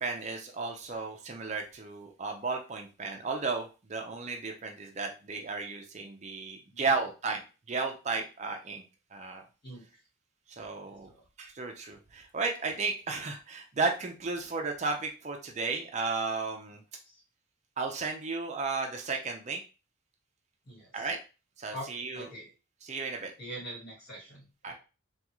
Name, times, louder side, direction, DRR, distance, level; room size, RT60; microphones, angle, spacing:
voice 1, 0.0-7.4 7.7-8.8 9.1-9.4 10.5-11.1 11.4-16.8 17.8-19.6 20.9-21.2 21.6-22.3 22.8-23.3 24.6-24.7, right 4 dB, 35° right, 3 dB, 0.5 m, -34 dB
voice 2, 10.8-11.2 17.1-17.2 20.7-21.1 21.7-21.9 22.1-22.5 23.4-24.7, right 1 dB, 50° left, -3 dB, 1.9 m, -44 dB
3.6 x 2.3 x 3.0 m, 0.32 s
head